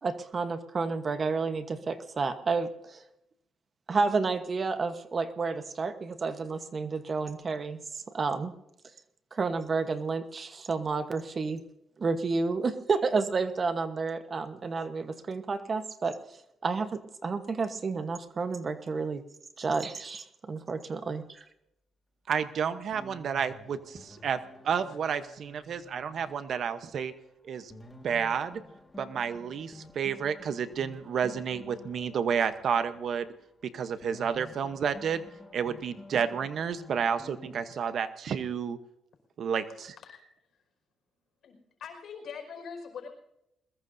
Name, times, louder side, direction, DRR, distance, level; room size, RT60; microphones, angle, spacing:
voice 1, 0.0-3.0 3.9-7.8 8.1-8.5 9.3-11.6 12.0-16.2 16.6-19.2 19.6-21.4, right 4 dB, 40° right, 9 dB, 1.1 m, -30 dB
voice 2, 22.3-24.4 24.6-27.1 27.5-27.7 28.0-28.6 29.0-33.3 33.7-35.2 35.5-38.8 39.4-39.9, right 7 dB, 60° right, 11 dB, 1.0 m, -30 dB
sound 1, 22.9-27.2 27.5-33.6 34.0-37.6, left 1 dB, 15° left, 1.9 m, -51 dB
voice 3, 39.7-40.2 40.5-40.6 41.4-43.1, left 6 dB, 65° left, 3 dB, 5.3 m, -44 dB
21.5 x 20.5 x 2.7 m, 0.82 s
cardioid pair, 90°, 0 cm